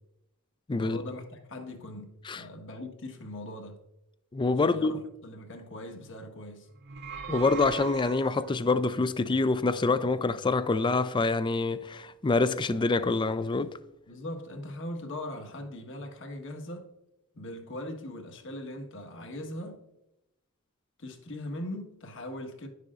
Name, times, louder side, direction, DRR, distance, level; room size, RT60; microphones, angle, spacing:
voice 1, 0.8-3.8 4.6-4.9 5.2-6.7 14.1-16.9 17.3-19.8 21.0-22.7, left 1 dB, 60° left, 1.4 m, -40 dB
voice 2, 4.3-4.9 7.3-13.7, left 3 dB, 20° left, 0.3 m, -26 dB
sound 1, 6.8-8.7, right 7 dB, 55° right, 0.6 m, -39 dB
10.5 x 6.6 x 2.4 m
head